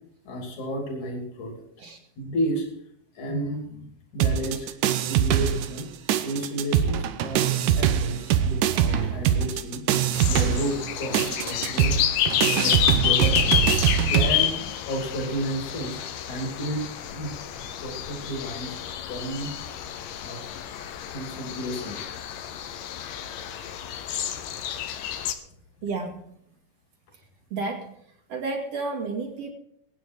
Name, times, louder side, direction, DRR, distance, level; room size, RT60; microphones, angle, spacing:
voice 1, 0.2-1.6 2.2-2.7 3.2-4.7 5.1-5.9 6.2-9.8 10.3-12.0 12.4-16.8 17.1-19.5 19.8-20.0 20.2-20.4 21.1-22.0, equal, 60° left, 2 dB, 4.3 m, -32 dB
sound 1, 4.2-5.8 6.1-14.3, right 9 dB, 75° right, 2.2 m, -23 dB
sound 2, 10.1-25.3, left 10 dB, 85° left, 2.6 m, -29 dB
voice 2, 25.8-26.2 27.5-27.9 28.3-29.5, right 3 dB, 50° right, 2 dB, 3.3 m, -31 dB
22.0 x 9.3 x 4.6 m, 0.70 s
omnidirectional pair, 3.8 m